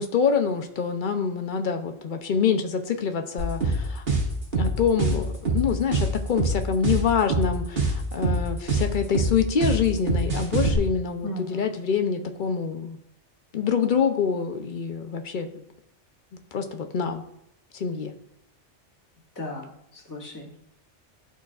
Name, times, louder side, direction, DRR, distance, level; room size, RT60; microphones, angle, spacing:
voice 1, 0.0-4.0 4.6-13.0 13.5-15.6 16.5-17.2 17.7-18.1, left 6 dB, 55° left, 6 dB, 0.7 m, -26 dB
sound 1, 3.4-10.8, right 2 dB, 55° right, 1.9 m, -24 dB
voice 2, 11.2-11.8 19.3-20.6, left 1 dB, 15° left, -6 dB, 1.6 m, -36 dB
12.0 x 4.1 x 2.4 m, 0.77 s
omnidirectional pair, 1.2 m